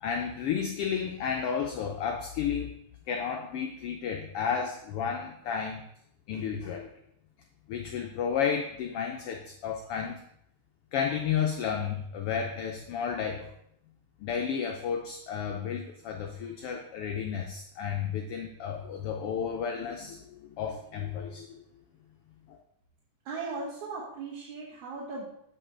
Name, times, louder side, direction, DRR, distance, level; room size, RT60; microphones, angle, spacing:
voice 1, 0.0-2.7 3.1-5.8 6.3-6.9 7.7-10.2 10.9-13.5 14.2-21.6 22.5-22.6, left 7 dB, 85° left, 2 dB, 1.2 m, -32 dB
voice 2, 23.3-25.3, right 3 dB, 75° right, -5 dB, 2.6 m, -37 dB
8.1 x 5.5 x 3.7 m, 0.74 s
omnidirectional pair, 3.4 m